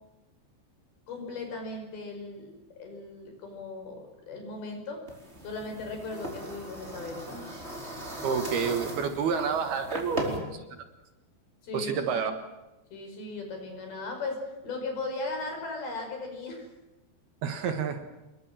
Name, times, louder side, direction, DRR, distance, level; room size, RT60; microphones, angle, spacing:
voice 1, 1.1-5.0 5.4-7.6 11.6-12.0 12.2-12.3 12.9-16.7, left 3 dB, 55° left, 4 dB, 7.1 m, -37 dB
sound 1, 5.1-10.4, right 1 dB, 15° right, 4.3 m, -38 dB
voice 2, 8.2-10.6 11.7-12.3 17.4-18.0, right 6 dB, 65° right, 7 dB, 3.3 m, -29 dB
27.5 x 22.0 x 7.6 m, 1.0 s
omnidirectional pair, 5.3 m